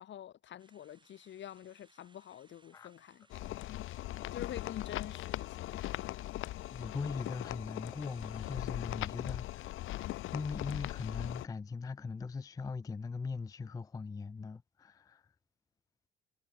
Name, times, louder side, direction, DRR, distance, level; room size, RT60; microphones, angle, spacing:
voice 1, 0.0-3.3 4.3-5.9, left 11 dB, 65° left, 2.3 m, -47 dB
sound 1, 0.6-8.6, right 3 dB, 25° right, 5.7 m, -69 dB
sound 2, 3.3-11.5, left 16 dB, 85° left, 1.1 m, -40 dB
voice 2, 6.7-9.8 10.3-15.3, left 4 dB, 20° left, 0.4 m, -40 dB
cardioid pair, 90°, 20 cm